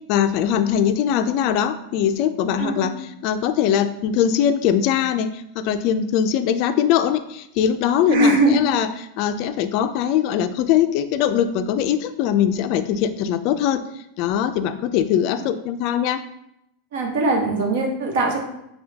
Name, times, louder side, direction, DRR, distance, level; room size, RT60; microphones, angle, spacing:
voice 1, 0.1-8.9 9.2-13.8 14.2-16.2, left 9 dB, 50° left, 10 dB, 0.3 m, -21 dB
voice 2, 2.6-2.9 8.1-8.6 15.4-15.5 16.9-18.4, right 2 dB, 70° right, 1 dB, 1.0 m, -20 dB
5.6 x 2.2 x 2.8 m, 0.80 s
supercardioid pair, 135°, 0 cm